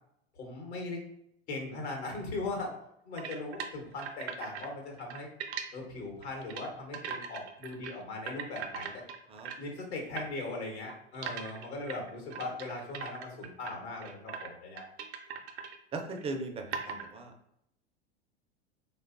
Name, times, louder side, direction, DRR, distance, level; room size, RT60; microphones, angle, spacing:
voice 1, 0.4-1.0 1.5-2.7 3.0-5.3 5.7-8.9 9.6-14.9, left 2 dB, 75° left, 1 dB, 1.0 m, -39 dB
sound 1, 3.2-4.7 5.0-5.6 6.2-6.7 6.9-7.9 8.2-9.7 10.1-10.3 10.9-13.8 14.0-14.5 14.8-15.8 16.2-16.3 16.7-17.1, right 7 dB, 75° right, 0.5 m, -40 dB
voice 2, 15.9-17.3, right 3 dB, 20° right, 4 dB, 0.4 m, -38 dB
3.2 x 2.3 x 2.4 m, 0.76 s
hypercardioid pair, 90°, 33 cm